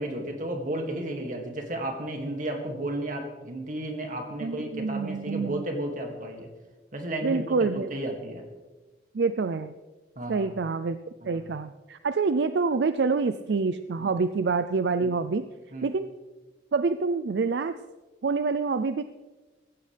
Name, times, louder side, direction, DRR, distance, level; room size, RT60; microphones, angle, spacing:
voice 1, 0.0-6.5 6.9-7.4 7.8-8.4 10.2-10.5 11.2-11.4 14.0-14.1 15.0-15.1 15.7-15.9, right 1 dB, 45° right, 3 dB, 2.3 m, -33 dB
voice 2, 4.4-5.6 7.2-7.9 9.1-9.7 10.3-11.0 11.3-15.4 15.8-16.1 16.7-17.7 18.2-19.0, right 4 dB, 75° right, 11 dB, 0.5 m, -26 dB
15.5 x 15.5 x 3.4 m, 1.2 s
head